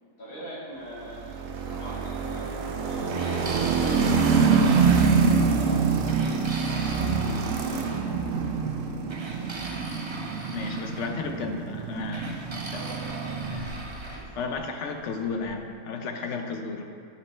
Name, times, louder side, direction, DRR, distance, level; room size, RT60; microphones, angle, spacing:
voice 1, 0.2-1.4 1.7-5.9 6.6-7.9 12.6-14.6 15.9-16.4, equal, 90° left, -8 dB, 2.6 m, -43 dB
sound 1, 1.0-14.2, right 5 dB, 75° right, 1.0 m, -26 dB
sound 2, 3.1-5.6 6.1-8.0 9.1-11.1 12.1-14.3, right 2 dB, 45° right, 0.3 m, -39 dB
voice 2, 10.5-12.8 13.5-13.7 14.1-16.9, left 4 dB, 65° left, 4 dB, 0.9 m, -33 dB
9.6 x 5.3 x 3.3 m, 2.3 s
omnidirectional pair, 1.4 m